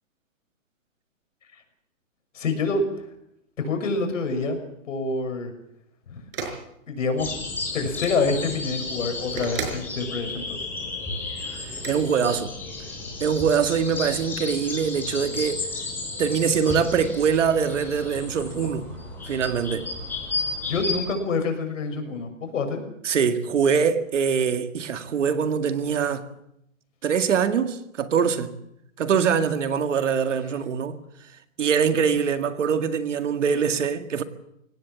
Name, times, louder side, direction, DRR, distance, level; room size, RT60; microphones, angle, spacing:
voice 1, 2.3-2.9 3.6-4.6 4.9-5.5 6.1-6.2 6.9-7.3 7.7-10.6 20.6-22.8, left 3 dB, 65° left, 6.7 m, -26 dB
sound 1, 6.3-6.6 7.9-8.2 9.4-9.9 11.7-11.9, right 5 dB, 40° right, 5.7 m, -32 dB
sound 2, 7.2-21.0, left 3 dB, 5° left, 5.7 m, -33 dB
voice 2, 11.5-12.5 13.2-15.7 16.2-18.9 19.3-19.9 23.0-26.3 27.0-28.5 29.0-31.0 31.6-34.2, right 6 dB, 60° right, 2.1 m, -23 dB
24.5 x 18.0 x 7.5 m
hypercardioid pair, 170°, 41 cm